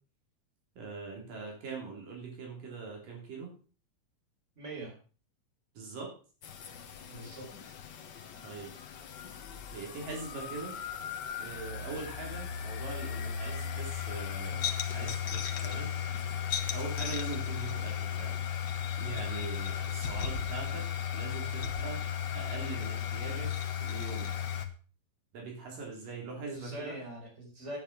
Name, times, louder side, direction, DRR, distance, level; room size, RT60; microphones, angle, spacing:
voice 1, 0.8-3.5 5.7-6.1 8.4-8.7 9.7-10.8 11.4-15.9 16.7-18.4 19.0-20.9 21.1-22.0 22.3-23.5 23.8-24.3 25.3-27.0, right 4 dB, 80° right, 0 dB, 4.9 m, -42 dB
voice 2, 4.6-4.9 7.1-7.7 26.4-27.8, right 1 dB, 20° right, -1 dB, 4.9 m, -42 dB
sound 1, 6.4-24.7, left 8 dB, 80° left, 0.9 m, -36 dB
9.3 x 9.1 x 6.0 m, 0.39 s
omnidirectional pair, 3.8 m